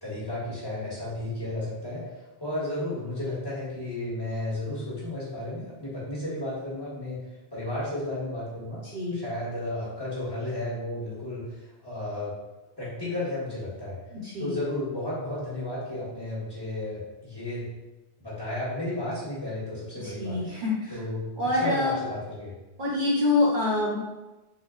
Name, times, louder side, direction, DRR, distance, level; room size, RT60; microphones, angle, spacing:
voice 1, 0.0-2.1 2.4-7.2 7.5-8.8 9.1-12.3 12.8-14.0 14.4-17.7 18.2-20.4 20.9-22.5, left 1 dB, 20° left, -9 dB, 1.2 m, -33 dB
voice 2, 8.8-9.2 14.1-14.5 20.0-21.0 21.4-22.0 22.8-24.0, left 2 dB, 55° right, -5 dB, 0.7 m, -26 dB
3.7 x 2.2 x 3.7 m, 1.1 s
omnidirectional pair, 1.1 m